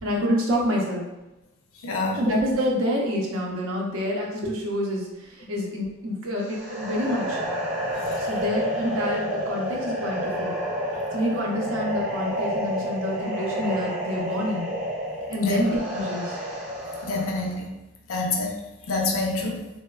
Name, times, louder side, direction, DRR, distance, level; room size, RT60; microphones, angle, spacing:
voice 1, 0.0-1.0 2.1-7.4 8.2-10.5 11.1-14.7 15.3-16.4, left 1 dB, 80° right, -1 dB, 0.6 m, -27 dB
voice 2, 1.8-2.2 15.4-15.6 17.0-17.7 18.1-18.6 18.9-19.6, left 2 dB, 80° left, 1 dB, 0.4 m, -26 dB
sound 1, 6.4-17.5, equal, 35° right, 0.7 m, -30 dB
3.0 x 2.0 x 2.3 m, 1.0 s
head